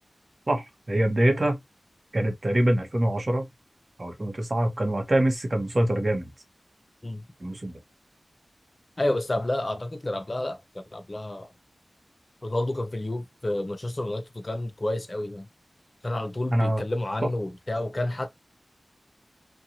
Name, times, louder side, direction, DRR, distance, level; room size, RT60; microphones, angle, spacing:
voice 1, 0.5-1.6 2.1-3.5 4.0-6.3 7.4-7.8 16.5-16.8, right 1 dB, 35° right, 1.0 m, -24 dB
voice 2, 9.0-11.5 12.4-15.5 16.0-18.3, left 1 dB, 30° left, 0.6 m, -30 dB
2.6 x 2.3 x 2.8 m
wide cardioid pair, 95°, 0 cm